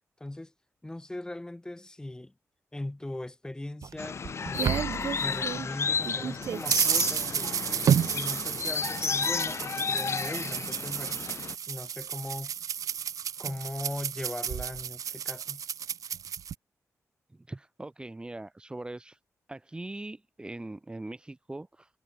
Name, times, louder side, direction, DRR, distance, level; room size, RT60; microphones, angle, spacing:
voice 1, 0.2-0.5 0.8-2.3 2.7-4.8 5.2-7.6 8.1-11.2 11.7-12.5 13.4-15.6, left 1 dB, 15° left, 5.7 m, -39 dB
sound 1, 3.8-5.7 6.0-16.5, right 8 dB, 85° right, 1.9 m, -31 dB
sound 2, 4.0-11.5, left 6 dB, 55° left, 3.1 m, -32 dB
voice 2, 17.3-19.2 19.5-21.9, right 2 dB, 15° right, 4.7 m, -41 dB
wide cardioid pair, 110°, 6 cm